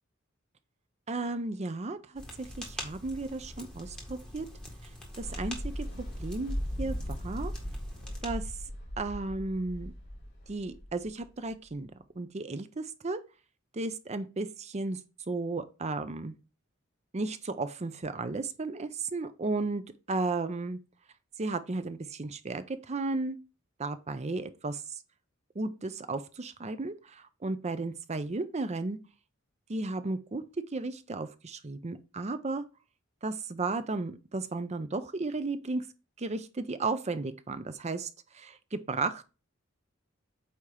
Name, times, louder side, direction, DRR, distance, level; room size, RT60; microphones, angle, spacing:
voice 1, 1.1-4.5 5.2-7.5 8.2-8.4 9.0-9.9 10.5-11.9 12.2-13.2 13.7-15.0 15.3-16.3 17.1-19.8 20.1-20.8 21.4-23.4 23.8-25.0 25.5-29.0 29.7-30.4 30.7-32.6 33.2-35.8 36.2-38.1 38.3-39.2, right 3 dB, 35° right, 0.6 m, -34 dB
sound 1, 2.1-8.6, left 1 dB, 5° left, 1.7 m, -45 dB
sound 2, 5.2-11.8, equal, 55° left, 3.9 m, -38 dB
8.5 x 2.9 x 4.8 m
head